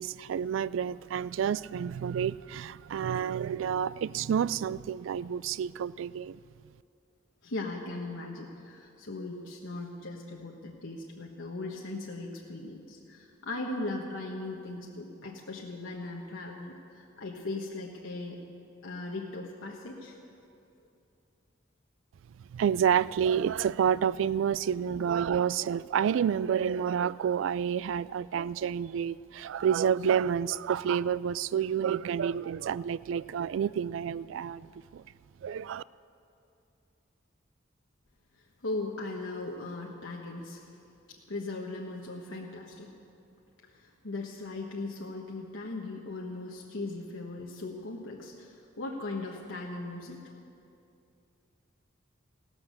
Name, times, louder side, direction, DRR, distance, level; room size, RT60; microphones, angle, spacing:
voice 1, 0.0-6.4 22.5-35.0 35.4-35.8, right 8 dB, 75° right, 20 dB, 0.3 m, -29 dB
voice 2, 7.4-18.4 18.8-20.2 25.2-25.4 38.6-40.7 41.1-42.9 43.7-50.2, left 2 dB, 85° left, -1 dB, 1.2 m, -38 dB
16.0 x 13.0 x 6.4 m, 2.6 s
head